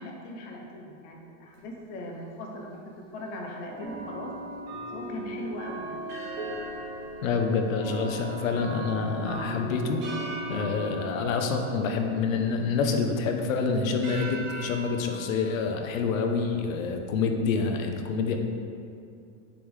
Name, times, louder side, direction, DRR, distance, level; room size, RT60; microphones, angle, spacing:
voice 1, 0.0-2.8 3.1-4.4 4.9-6.0, left 1 dB, 25° left, 1 dB, 0.5 m, -39 dB
sound 1, 1.5-1.6 2.7-2.8 3.8-17.0, right 1 dB, 50° right, 1.3 m, -40 dB
sound 2, 6.1-8.6 8.9-9.0 10.0-12.5 13.0-13.4 14.0-16.8, right 2 dB, 25° right, 1.4 m, -42 dB
voice 2, 7.2-10.0 10.5-18.4, left 4 dB, 85° left, 4 dB, 0.8 m, -27 dB
7.0 x 3.6 x 4.6 m, 2.4 s
supercardioid pair, 165°, 40 cm